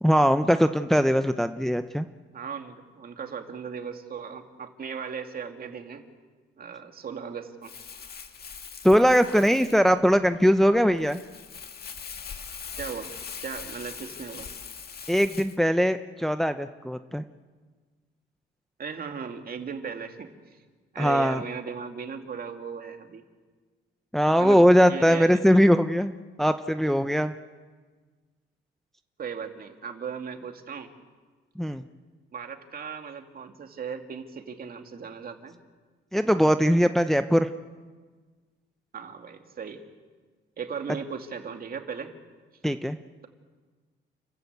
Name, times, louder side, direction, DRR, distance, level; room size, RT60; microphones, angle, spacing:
voice 1, 0.0-2.0 8.8-11.2 15.1-17.2 21.0-21.4 24.1-26.1 26.4-27.3 31.6-31.8 36.1-37.5 42.6-43.0, equal, ahead, 9 dB, 0.7 m, -21 dB
voice 2, 2.3-6.0 6.6-7.7 12.8-13.1 13.4-14.5 18.8-20.6 20.9-23.2 24.4-24.6 24.9-25.3 29.2-30.9 31.7-31.8 32.3-35.6 38.9-39.8 40.6-42.1, right 6 dB, 50° right, 5 dB, 2.5 m, -37 dB
Crumpling crinkling, 7.6-15.6, left 6 dB, 50° left, 1.9 m, -41 dB
29.5 x 14.0 x 8.1 m, 1.4 s
cardioid pair, 90°, 20 cm